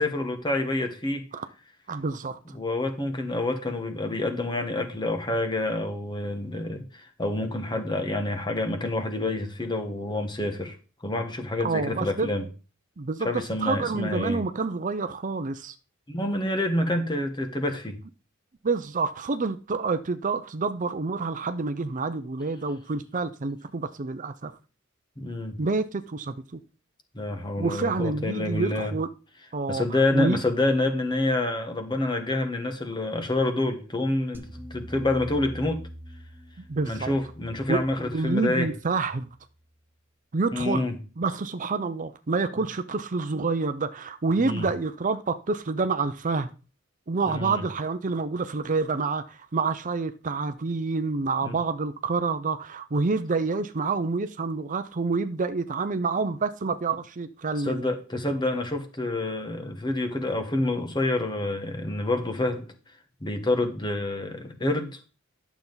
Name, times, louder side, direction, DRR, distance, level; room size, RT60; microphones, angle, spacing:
voice 1, 0.0-1.3 2.5-10.8 11.0-12.4 13.2-14.4 16.1-18.0 25.2-25.6 27.1-28.9 29.7-35.8 36.8-38.7 40.5-41.0 44.4-44.7 47.3-47.6 51.4-51.6 57.6-62.7 63.2-65.0, left 2 dB, 20° left, 1.3 m, -27 dB
voice 2, 1.9-2.4 11.6-12.3 13.0-15.7 18.6-24.5 25.6-26.6 27.6-29.1 29.5-30.4 36.7-37.1 37.7-39.3 40.3-40.8 41.2-46.5 47.1-57.8, right 4 dB, 40° right, 0.6 m, -28 dB
sound 1, 34.3-39.6, equal, 10° right, 1.0 m, -44 dB
11.0 x 7.1 x 4.0 m
head